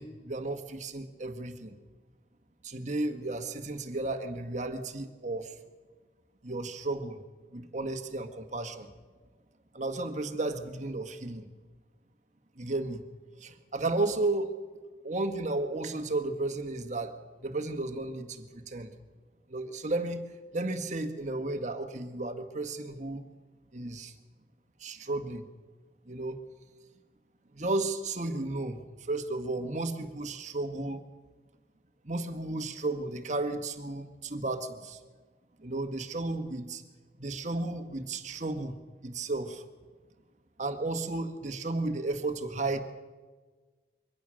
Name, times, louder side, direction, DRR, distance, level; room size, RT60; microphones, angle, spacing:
voice 1, 0.0-1.8 2.6-5.5 6.4-7.2 7.5-8.9 9.7-11.5 12.6-13.0 13.4-14.5 15.0-18.9 19.5-20.2 20.5-23.2 23.7-24.1 24.8-25.4 26.1-26.4 27.5-28.8 29.1-31.0 32.0-35.0 35.6-36.8 37.2-38.7 39.0-39.6 40.6-42.8, right 2 dB, 40° right, 7 dB, 1.6 m, -33 dB
23.5 x 17.5 x 6.4 m, 1.4 s
head